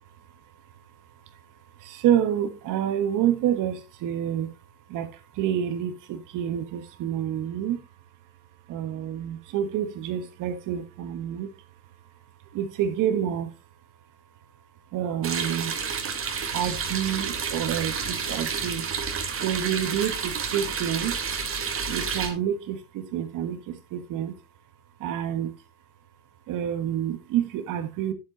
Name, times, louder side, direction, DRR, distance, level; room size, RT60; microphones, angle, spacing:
voice 1, 1.8-4.5 4.9-5.1 5.4-7.8 8.7-11.5 12.5-13.5 14.9-15.7 16.5-18.8 19.4-21.1 21.9-24.3 25.0-25.5 26.5-28.1, right 10 dB, 45° right, 1.6 m, -28 dB
sound 1, 15.2-22.3, right 6 dB, 30° right, 2.1 m, -30 dB
11.5 x 7.9 x 3.0 m
hypercardioid pair, 90°, 43 cm